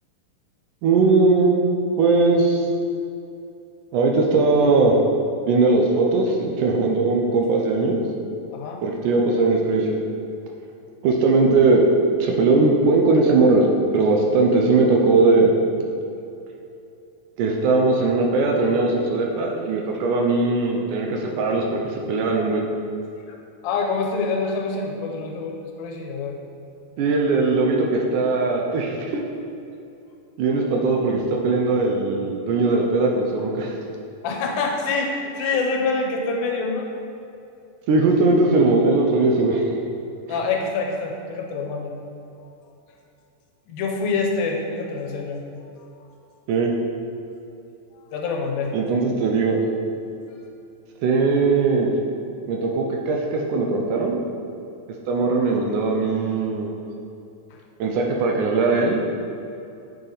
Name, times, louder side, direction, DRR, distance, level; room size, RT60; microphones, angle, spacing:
voice 1, 0.8-1.6 2.0-2.7 3.9-5.0 5.5-8.0 8.8-10.0 11.0-11.9 12.2-13.7 13.9-15.5 17.4-22.7 27.0-29.2 30.4-33.8 37.9-39.8 40.3-40.4 46.5-46.7 48.7-49.7 51.0-51.9 52.5-54.2 55.1-56.7 57.8-59.0, right 3 dB, 75° right, 0 dB, 2.1 m, -19 dB
voice 2, 8.5-8.8 23.6-26.3 34.2-36.9 40.3-41.9 43.7-45.4 46.0-46.1 47.9-48.8, left 4 dB, 80° left, 2 dB, 2.7 m, -26 dB
8.3 x 6.9 x 4.0 m, 2.7 s
omnidirectional pair, 4.1 m